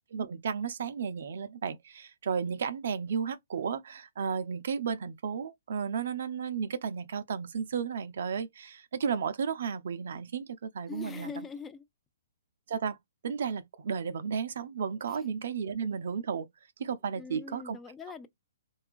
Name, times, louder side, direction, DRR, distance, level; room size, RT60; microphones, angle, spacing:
voice 1, 0.1-11.3 12.7-13.0 13.2-16.5 16.8-17.8, right 6 dB, 65° right, 0.4 m, -33 dB
voice 2, 10.9-11.8 15.1-15.2 17.1-18.3, left 5 dB, 15° left, 0.4 m, -42 dB
2.8 x 2.3 x 2.4 m
hypercardioid pair, 130°, 0 cm